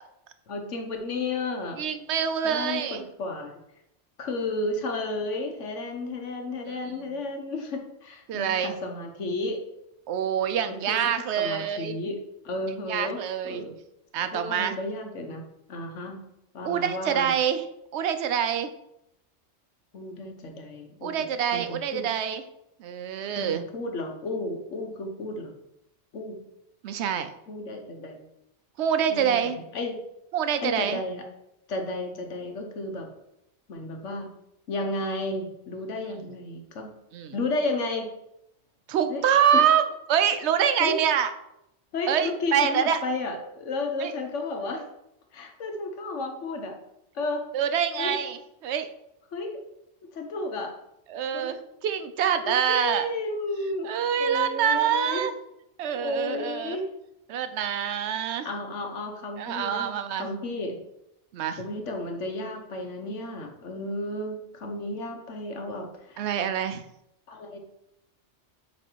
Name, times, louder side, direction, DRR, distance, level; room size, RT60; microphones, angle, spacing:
voice 1, 0.5-1.9 2.4-3.6 4.2-9.6 10.7-12.2 12.4-13.2 13.4-13.7 14.3-15.4 15.7-17.3 19.9-22.1 23.4-25.5 26.1-26.4 27.5-28.2 29.1-30.0 30.6-31.2 31.7-33.1 33.7-34.3 34.7-36.9 37.3-38.1 39.1-39.2 39.5-39.7 40.8-41.0 41.9-44.9 45.3-46.7 47.1-47.4 48.0-48.2 49.3-49.6 50.1-50.7 51.3-51.5 52.4-55.3 56.0-56.9 58.4-60.7 61.6-66.3 67.3-67.6, left 2 dB, 85° left, 3 dB, 1.4 m, -33 dB
voice 2, 1.8-3.0 8.3-8.7 10.1-12.0 12.9-13.6 14.1-14.7 16.6-17.6 17.9-18.7 21.0-22.4 22.8-23.6 26.8-27.3 28.8-29.6 30.3-31.0 37.1-37.3 38.9-39.8 40.1-41.3 42.1-43.0 44.0-44.1 47.5-48.9 51.1-53.1 53.8-55.3 55.8-56.8 57.3-58.5 59.4-60.3 61.3-61.6 66.2-66.8, right 8 dB, 75° right, 9 dB, 0.8 m, -25 dB
8.3 x 3.2 x 4.6 m, 0.83 s
omnidirectional pair, 1.2 m